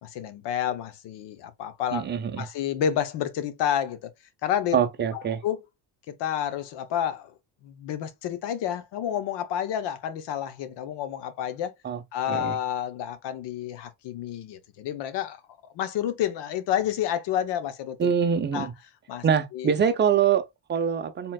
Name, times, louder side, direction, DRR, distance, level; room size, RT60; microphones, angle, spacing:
voice 1, 0.0-4.1 4.4-4.8 5.1-5.6 6.1-7.3 7.6-11.7 12.1-15.4 15.7-18.1 18.5-18.7 19.1-19.2 19.5-19.7, left 10 dB, 75° left, 1.0 m, -30 dB
voice 2, 1.9-2.4 4.7-5.4 11.8-12.0 12.3-12.6 18.0-18.7 19.2-21.3, right 7 dB, 25° right, 0.6 m, -24 dB
4.3 x 3.7 x 2.3 m
cardioid pair, 155°, 42 cm